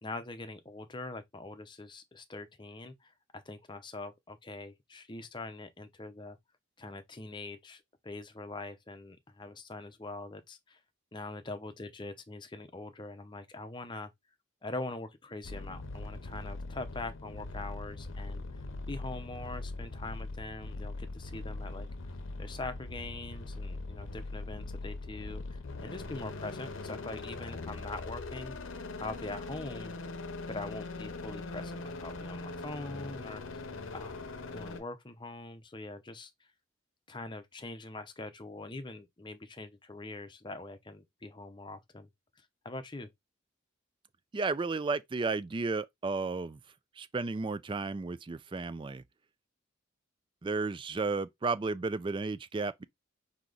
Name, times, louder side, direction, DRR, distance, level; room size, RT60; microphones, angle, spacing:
voice 1, 0.0-6.4 6.8-10.8 11.1-14.1 14.6-29.9 30.5-33.7 33.9-34.3 34.5-36.3 37.1-42.1 42.6-43.1, left 2 dB, 25° left, 0.6 m, -43 dB
sound 1, 15.4-34.8, left 2 dB, 70° left, 0.7 m, -41 dB
voice 2, 44.3-46.6 47.0-49.0 50.4-52.8, right 3 dB, 25° right, 0.3 m, -33 dB
4.8 x 2.9 x 3.8 m
head